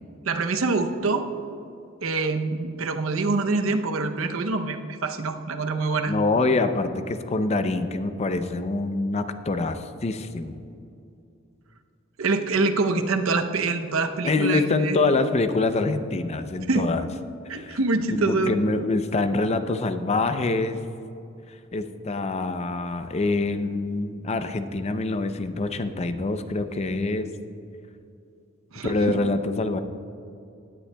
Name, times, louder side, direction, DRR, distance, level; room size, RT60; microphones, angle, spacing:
voice 1, 0.2-1.3 2.0-6.1 12.2-15.0 16.7-16.9 17.5-18.6 28.7-29.1, right 3 dB, 70° right, 7 dB, 0.7 m, -25 dB
voice 2, 6.1-10.6 14.2-17.1 17.5-17.8 18.1-20.8 21.7-27.3 28.8-29.8, left 3 dB, 30° left, 9 dB, 0.5 m, -25 dB
17.0 x 10.0 x 2.2 m, 2.6 s
head